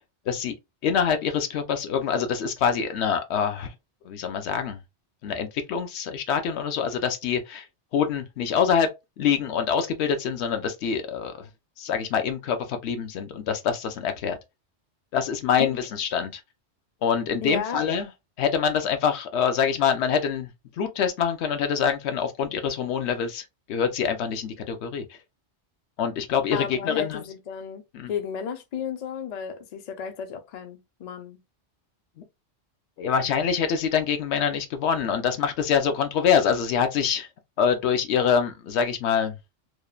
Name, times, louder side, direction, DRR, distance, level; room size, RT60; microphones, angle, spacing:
voice 1, 0.8-3.7 4.0-4.8 5.2-7.7 7.9-8.9 9.2-11.5 11.8-14.4 15.1-16.4 17.0-18.1 18.4-20.5 20.8-25.0 26.0-27.2 27.9-28.1 33.0-37.3 37.6-39.4, left 7 dB, 70° left, 0.9 m, -25 dB
voice 2, 17.4-17.8 26.5-27.8 28.1-31.4, left 7 dB, 55° left, 0.5 m, -33 dB
3.0 x 2.1 x 2.3 m
omnidirectional pair, 1.2 m